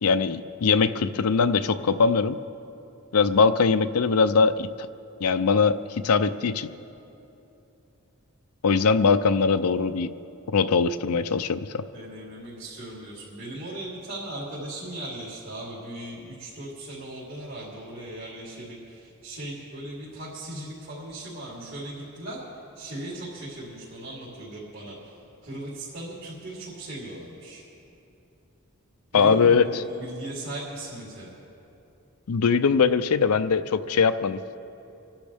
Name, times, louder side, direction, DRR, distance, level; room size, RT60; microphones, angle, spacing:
voice 1, 0.0-2.4 3.1-4.7 5.2-6.7 8.6-10.1 10.5-11.8 29.1-29.6 32.3-34.4, left 5 dB, 90° left, 11 dB, 0.5 m, -21 dB
voice 2, 11.9-22.4 22.7-27.6 29.1-31.3, right 1 dB, 65° right, -9 dB, 3.5 m, -38 dB
26.5 x 11.5 x 3.5 m, 2.9 s
head